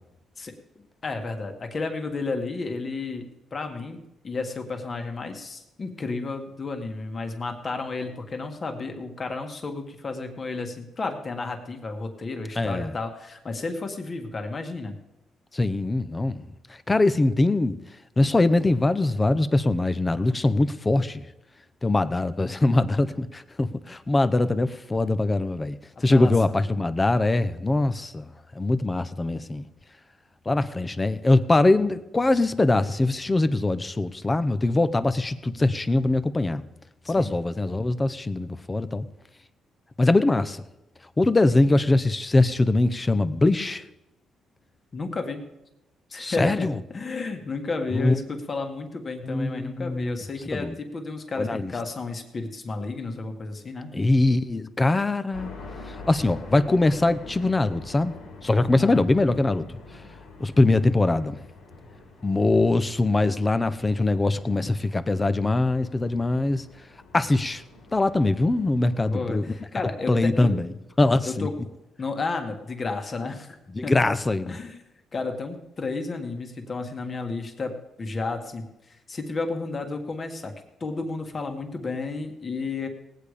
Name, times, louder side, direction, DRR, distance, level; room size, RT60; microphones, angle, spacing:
voice 1, 1.0-3.3 3.5-14.9 26.0-26.4 37.1-37.4 44.9-45.5 46.1-53.9 58.8-59.1 69.0-70.6 71.2-71.5 72.0-73.6 73.8-73.9 74.5-74.8 75.1-80.5 80.8-82.9, left 3 dB, 40° left, 1.8 m, -32 dB
voice 2, 12.6-12.9 15.5-16.4 16.9-17.8 18.2-21.2 21.8-25.8 26.0-28.2 28.6-29.6 30.5-36.6 37.1-39.0 40.0-40.6 41.2-43.8 46.2-46.7 47.9-48.2 49.2-50.2 50.5-50.7 51.4-51.7 53.9-55.5 56.1-58.1 58.4-59.7 60.4-61.4 62.2-66.6 67.1-67.6 67.9-69.4 70.1-70.7 71.0-71.5 73.7-74.6, left 2 dB, 20° left, 0.8 m, -22 dB
sound 1, 55.3-69.3, left 3 dB, 85° left, 2.9 m, -45 dB
18.5 x 8.4 x 5.1 m
cardioid pair, 90°, 0 cm